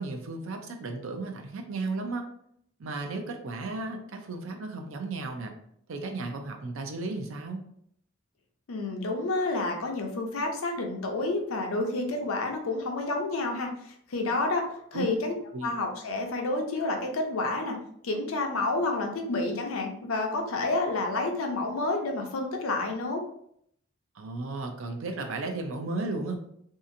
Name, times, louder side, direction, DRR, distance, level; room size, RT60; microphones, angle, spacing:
voice 1, 0.0-2.2 2.8-5.5 5.9-7.6 14.9-15.2 15.5-15.7 24.2-26.4, right 3 dB, 70° right, 4 dB, 0.5 m, -34 dB
voice 2, 8.7-15.3 15.6-17.8 18.0-23.2, left 2 dB, 85° left, 3 dB, 0.6 m, -29 dB
2.7 x 2.4 x 2.6 m, 0.69 s
head